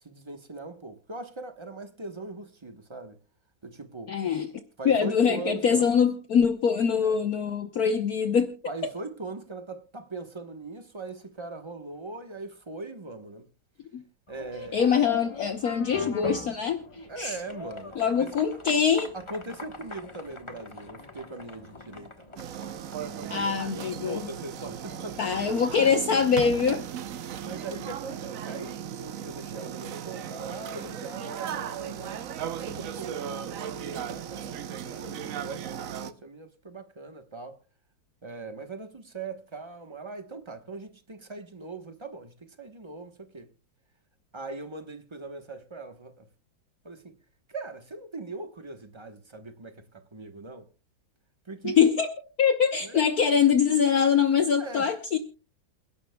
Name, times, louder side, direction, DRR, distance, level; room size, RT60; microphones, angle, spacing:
voice 1, 0.0-3.2 3.6-4.1 4.8-5.9 6.9-7.2 8.7-13.5 14.3-14.9 17.1-18.3 19.1-22.4 23.1-25.4 27.4-37.6 38.2-43.5 44.3-46.3 46.8-47.2 47.5-50.7 51.4-51.8 52.8-53.1 54.6-54.9, right 3 dB, 20° right, 0.8 m, -40 dB
voice 2, 4.1-4.5 4.8-8.5 13.9-14.0 14.7-16.8 17.2-17.4 18.0-19.1 23.3-24.2 25.2-26.9 51.8-52.1 52.4-55.2, left 7 dB, 55° left, 1.3 m, -23 dB
sound 1, 14.3-27.0, left 3 dB, 20° left, 1.0 m, -42 dB
sound 2, 22.4-36.1, right 9 dB, 60° right, 0.9 m, -36 dB
28.5 x 11.5 x 2.3 m
omnidirectional pair, 2.1 m